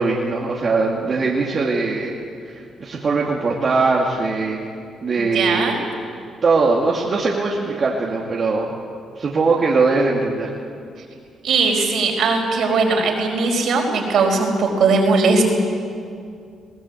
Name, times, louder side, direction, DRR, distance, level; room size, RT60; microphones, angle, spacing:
voice 1, 0.0-2.2 2.4-4.6 5.0-5.7 6.4-8.7 9.2-10.5, right 3 dB, 45° right, -3 dB, 2.6 m, -20 dB
voice 2, 5.2-5.8 11.4-15.4, right 4 dB, 65° right, 2 dB, 5.0 m, -19 dB
21.5 x 18.0 x 8.5 m, 2.3 s
cardioid pair, 90°, 0 cm